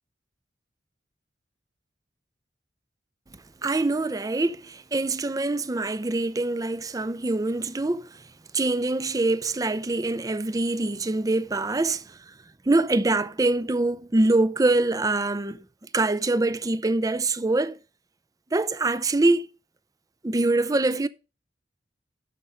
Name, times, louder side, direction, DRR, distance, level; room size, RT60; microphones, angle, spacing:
voice 1, 3.6-8.2 8.5-12.3 12.7-15.6 15.9-17.8 18.5-19.5 20.2-21.1, right 2 dB, 20° right, 0.5 m, -24 dB
12.0 x 5.5 x 5.0 m
head